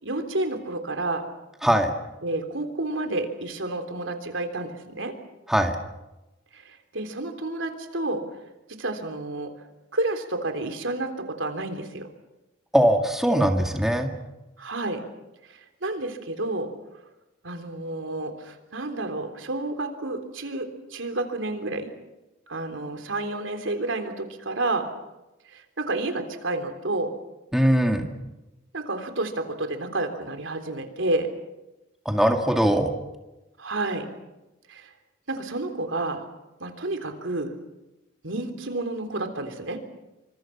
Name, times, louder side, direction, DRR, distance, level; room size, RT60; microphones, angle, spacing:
voice 1, 0.0-1.3 2.2-5.1 6.5-8.3 8.7-9.5 9.9-12.1 14.6-15.0 15.5-16.7 17.4-21.9 22.5-24.9 25.5-27.1 28.7-31.3 33.6-34.1 34.7-34.9 35.3-36.3 36.6-37.5 38.2-39.8, right 2 dB, 75° right, 7 dB, 3.5 m, -30 dB
voice 2, 12.7-14.1 27.5-28.1 32.1-32.9, equal, ahead, 3 dB, 2.0 m, -21 dB
27.5 x 25.5 x 5.9 m, 1.0 s
head